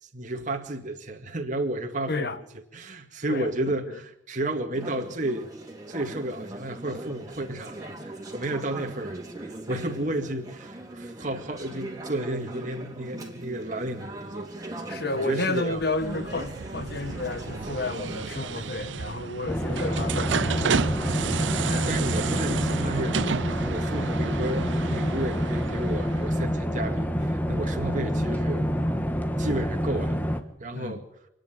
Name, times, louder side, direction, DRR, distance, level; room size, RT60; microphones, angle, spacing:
voice 1, 0.0-2.4 2.7-5.5 5.9-14.8 15.1-15.8 21.9-23.2 23.7-28.7 29.4-30.2 30.6-31.0, right 1 dB, 40° right, 2.2 m, -32 dB
voice 2, 2.1-2.4 3.3-3.5 3.9-4.0 14.9-21.0 21.4-21.9 30.7-31.0, left 3 dB, 55° left, 1.7 m, -31 dB
Conversation / Chatter, 4.7-18.7, right 1 dB, 20° right, 3.7 m, -40 dB
sound 1, 15.7-26.4, right 5 dB, 75° right, 0.7 m, -32 dB
sound 2, 19.5-30.4, equal, 10° left, 1.5 m, -27 dB
28.5 x 10.5 x 9.3 m
head